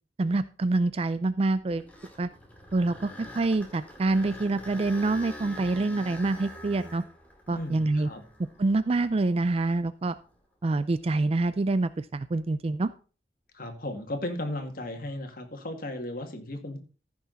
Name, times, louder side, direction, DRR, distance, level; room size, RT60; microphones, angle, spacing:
voice 1, 0.2-1.9 2.2-2.3 2.7-7.0 7.5-8.1 8.6-10.2 10.6-12.9, right 2 dB, 35° right, 14 dB, 0.4 m, -26 dB
sound 1, 1.6-9.7 10.3-10.4 11.1-11.2 14.8-15.1, left 1 dB, 10° left, 2.4 m, -45 dB
voice 2, 7.5-8.2 13.5-16.8, left 1 dB, 55° left, 4 dB, 2.1 m, -35 dB
14.5 x 6.2 x 4.0 m, 0.37 s
head